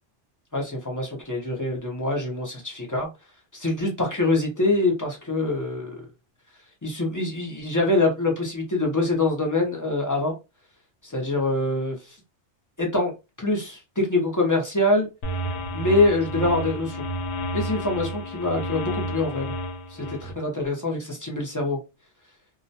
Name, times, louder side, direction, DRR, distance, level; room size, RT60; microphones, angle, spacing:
voice 1, 0.5-3.1 3.5-6.0 6.8-10.4 11.0-12.2 12.8-13.1 13.4-15.1 15.7-17.0 17.5-19.5 19.9-21.8, left 2 dB, 25° left, 0.4 m, -24 dB
sound 1, 15.2-20.3, equal, 80° left, 0.9 m, -31 dB
2.3 x 2.1 x 2.6 m
omnidirectional pair, 1.2 m